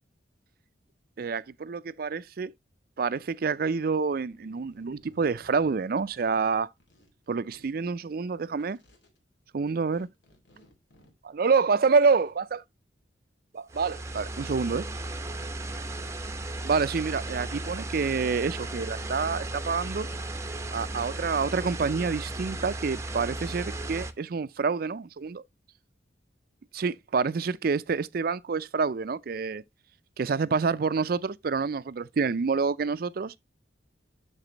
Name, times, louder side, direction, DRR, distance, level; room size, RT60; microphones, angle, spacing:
voice 1, 1.2-2.5 3.0-6.7 7.3-8.8 9.5-10.1 11.2-12.6 13.5-14.9 16.6-20.1 20.7-25.4 26.7-29.6 30.2-33.4, right 5 dB, 50° right, 0.4 m, -27 dB
sound 1, 3.1-3.9 4.2-6.2 6.5-7.7 8.1-9.2 9.6-12.4, left 1 dB, 75° left, 2.4 m, -61 dB
sound 2, 13.7-24.1, right 2 dB, 15° right, 0.6 m, -35 dB
12.0 x 4.1 x 2.9 m
head